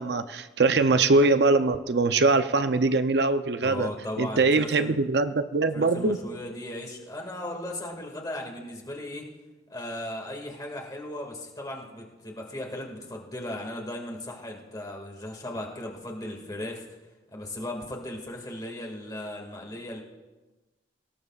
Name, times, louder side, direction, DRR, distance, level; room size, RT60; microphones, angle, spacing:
voice 1, 0.0-3.9 4.2-6.2, right 3 dB, 70° right, 10 dB, 0.6 m, -22 dB
voice 2, 3.6-5.0 5.7-9.2 9.7-16.9 17.3-20.0, left 1 dB, 20° left, 1 dB, 2.1 m, -37 dB
23.0 x 17.5 x 2.4 m, 1.2 s
head